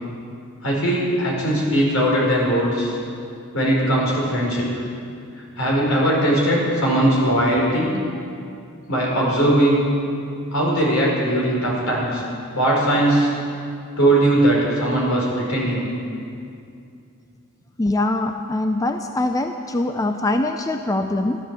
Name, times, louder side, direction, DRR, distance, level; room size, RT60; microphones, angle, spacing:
voice 1, 0.6-3.0 3.5-4.7 5.6-7.9 8.9-9.9 10.5-12.2 12.5-13.3 14.0-15.9, right 1 dB, 75° left, -3 dB, 4.9 m, -19 dB
voice 2, 17.8-21.4, left 2 dB, 15° left, 6 dB, 0.5 m, -23 dB
14.0 x 12.0 x 7.5 m, 2.4 s
head